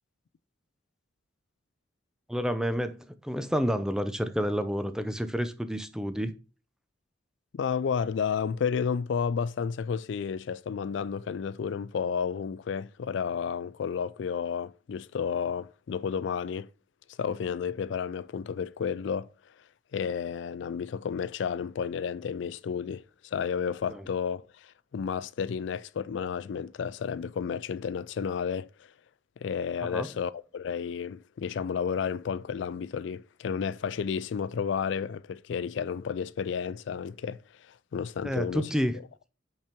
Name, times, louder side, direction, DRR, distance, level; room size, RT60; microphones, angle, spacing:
voice 1, 2.3-6.3 23.9-24.1 29.8-30.1 38.2-39.0, equal, 5° right, 0.5 m, -29 dB
voice 2, 7.5-16.7 17.2-19.3 19.9-28.9 29.4-37.4 37.9-38.7, left 6 dB, 70° left, 0.3 m, -32 dB
5.6 x 5.2 x 4.4 m
head